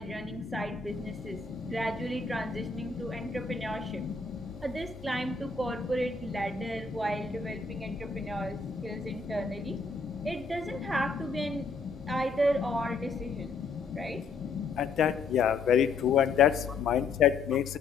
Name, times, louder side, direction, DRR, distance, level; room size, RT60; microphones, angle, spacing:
voice 1, 0.0-4.0 4.6-9.8 10.2-11.7 12.1-13.5 13.9-14.2, right 2 dB, 10° right, 8 dB, 0.6 m, -34 dB
Engine, 0.9-16.8, left 2 dB, 50° left, 2.2 m, -47 dB
voice 2, 15.0-16.5 16.9-17.6, left 10 dB, 70° left, 15 dB, 0.5 m, -24 dB
13.0 x 5.4 x 6.4 m, 0.90 s
cardioid pair, 140°, 0 cm